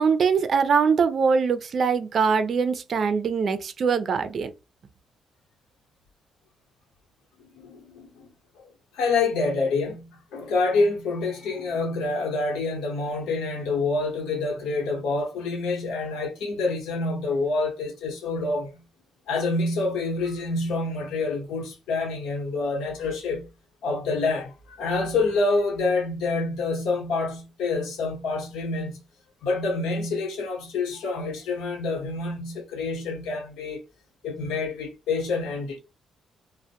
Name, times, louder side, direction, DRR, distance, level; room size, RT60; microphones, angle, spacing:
voice 1, 0.0-4.5, right 5 dB, 50° right, 0.4 m, -22 dB
voice 2, 7.4-8.3 8.9-18.8 19.3-23.5 23.8-29.0 29.4-33.8 34.2-35.8, left 3 dB, 90° left, 1.0 m, -27 dB
2.1 x 2.1 x 2.8 m
cardioid pair, 90°, 0 cm